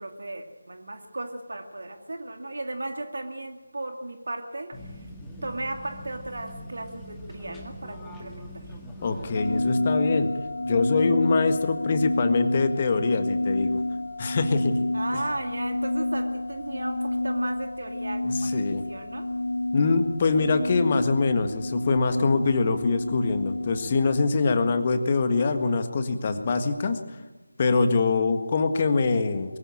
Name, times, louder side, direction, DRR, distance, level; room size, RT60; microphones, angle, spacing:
voice 1, 0.0-5.1 5.4-8.7 14.9-19.2, right 2 dB, 55° right, 4 dB, 2.4 m, -35 dB
sound 1, 4.7-9.8, equal, 5° left, 1.8 m, -42 dB
voice 2, 9.0-10.3 10.6-13.8 14.2-14.9 15.1-15.2 18.2-18.8 19.7-27.0 27.6-29.6, left 4 dB, 25° left, 8 dB, 1.7 m, -24 dB
sound 2, 9.3-24.3, left 2 dB, 60° left, 1.4 m, -29 dB
23.0 x 15.5 x 8.8 m, 1.2 s
figure-of-eight pair, 160°, 0 cm